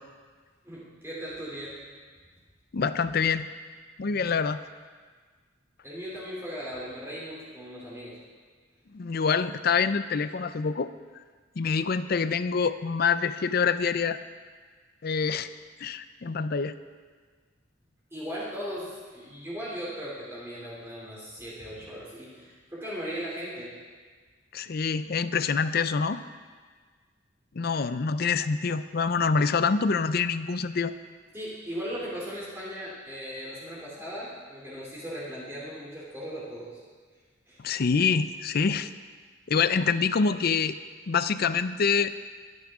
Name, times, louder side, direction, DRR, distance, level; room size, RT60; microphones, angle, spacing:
voice 1, 0.6-1.8 5.8-8.2 18.1-23.7 31.3-36.8 37.5-37.6, equal, 15° right, -7 dB, 2.9 m, -38 dB
voice 2, 2.7-3.5 4.0-4.6 8.9-10.9 11.6-14.2 15.0-15.5 15.8-16.7 24.5-26.2 27.5-30.9 37.6-38.9 39.5-40.8 41.1-42.1, left 5 dB, 50° left, 13 dB, 0.5 m, -26 dB
22.0 x 9.8 x 3.6 m, 1.5 s
head